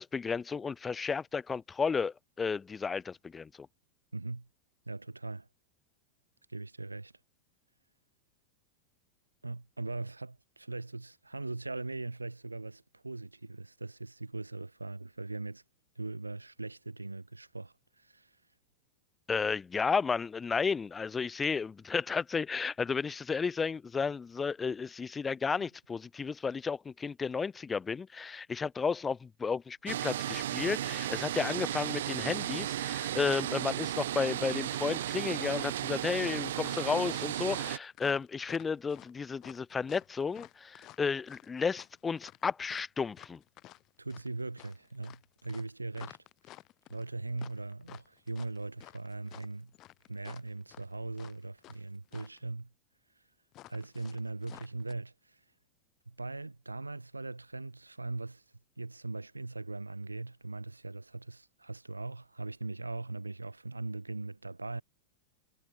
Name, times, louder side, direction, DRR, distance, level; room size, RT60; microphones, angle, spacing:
voice 1, 0.0-3.5 19.3-43.4, left 5 dB, 15° left, 1.0 m, -33 dB
voice 2, 4.1-4.5 4.9-5.5 6.5-7.1 9.4-15.6 15.9-18.3 25.5-25.6 44.0-46.2 46.9-49.7 50.1-52.7 53.7-55.4 56.1-58.4 58.8-64.8, right 2 dB, 80° right, 6.5 m, -40 dB
sound 1, 29.9-37.8, right 12 dB, 60° right, 0.5 m, -34 dB
sound 2, 36.6-51.8 52.1-52.4 53.5-54.9, left 16 dB, 35° left, 3.2 m, -53 dB
figure-of-eight pair, 90°, 0 cm